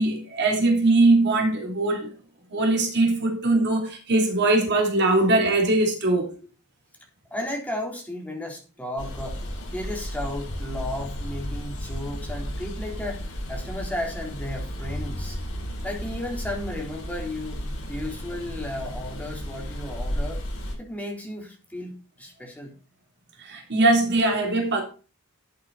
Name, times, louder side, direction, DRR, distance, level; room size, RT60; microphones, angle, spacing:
voice 1, 0.0-2.1 2.5-6.3 23.4-24.8, right 2 dB, 50° right, 3.5 m, -21 dB
voice 2, 7.3-9.4 9.7-15.4 15.8-17.6 17.9-20.4 20.8-22.7, left 1 dB, 5° left, 3.8 m, -34 dB
sound 1, 9.0-20.7, equal, 65° left, 7.0 m, -33 dB
11.5 x 8.6 x 4.2 m
head